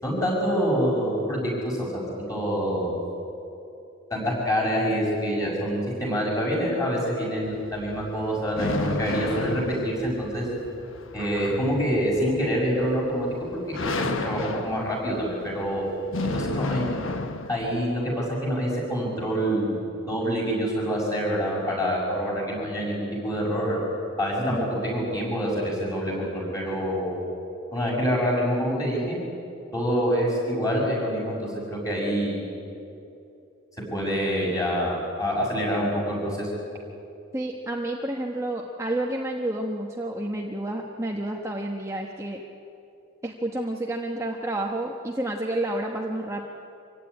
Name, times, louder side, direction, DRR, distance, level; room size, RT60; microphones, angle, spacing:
voice 1, 0.0-2.9 4.1-10.5 11.1-15.9 16.3-16.8 17.5-19.8 20.1-23.8 24.2-27.2 27.7-29.2 29.7-32.4 33.8-36.5, equal, 15° left, -3 dB, 6.6 m, -26 dB
sound 1, 7.4-17.9, left 2 dB, 70° left, 1.3 m, -33 dB
voice 2, 37.3-42.4 43.2-46.4, right 1 dB, 15° right, 0 dB, 1.1 m, -30 dB
25.0 x 16.0 x 9.9 m, 2.7 s
head